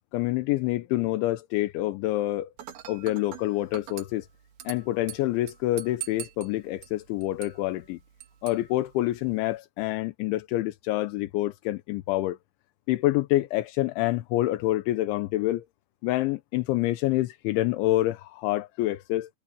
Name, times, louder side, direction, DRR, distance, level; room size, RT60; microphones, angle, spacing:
voice 1, 0.1-2.5 2.9-4.3 4.6-8.0 8.4-12.4 12.9-15.6 16.0-19.3, left 16 dB, 80° left, 3.3 m, -27 dB
Dishes pots and pans / Glass, 2.6-9.6, right 12 dB, 60° right, 3.4 m, -44 dB
omnidirectional pair, 5.5 m